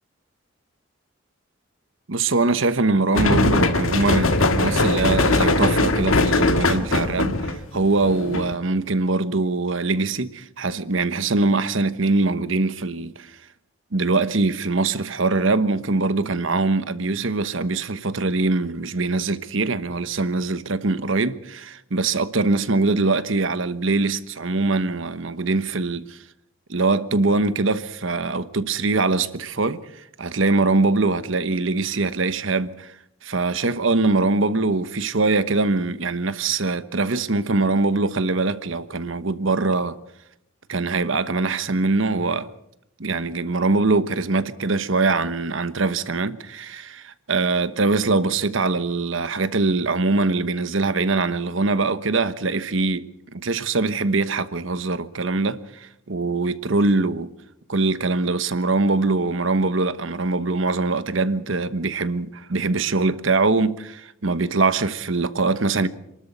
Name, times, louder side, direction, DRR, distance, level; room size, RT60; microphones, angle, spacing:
voice 1, 2.1-13.3 13.9-26.2 26.7-29.8 30.2-32.9 33.2-40.0 40.7-42.5 43.0-57.3 57.7-65.9, right 3 dB, 70° right, 1.1 m, -22 dB
sound 1, 3.1-8.5, left 2 dB, 85° left, 1.8 m, -20 dB
27.5 x 13.0 x 8.0 m
head